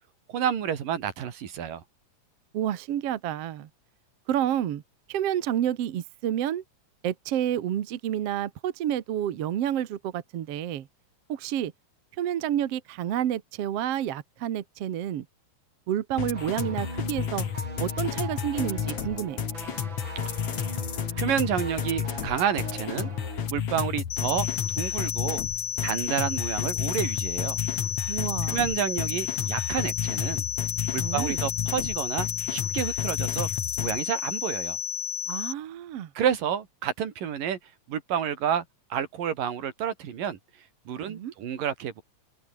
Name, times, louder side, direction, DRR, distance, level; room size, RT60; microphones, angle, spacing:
voice 1, 0.3-1.8 20.3-20.4 21.2-23.1 23.5-25.4 25.8-27.6 28.5-30.5 30.9-33.5 33.8-34.8 36.2-37.6 37.9-38.7 38.9-40.4 40.9-42.0, right 9 dB, 75° right, 4.0 m, -29 dB
voice 2, 2.5-3.7 4.3-4.8 5.1-6.6 7.0-10.9 11.3-11.7 12.2-15.3 15.9-17.5 17.8-19.4 28.1-28.6 31.0-31.4 35.3-36.1 41.1-41.3, right 11 dB, 55° right, 1.9 m, -29 dB
sound 1, 16.2-34.0, left 8 dB, 55° left, 3.3 m, -32 dB
sound 2, 16.3-23.5, right 3 dB, 35° right, 5.9 m, -41 dB
sound 3, 24.1-35.5, left 9 dB, 85° left, 4.0 m, -32 dB
open air
omnidirectional pair, 3.9 m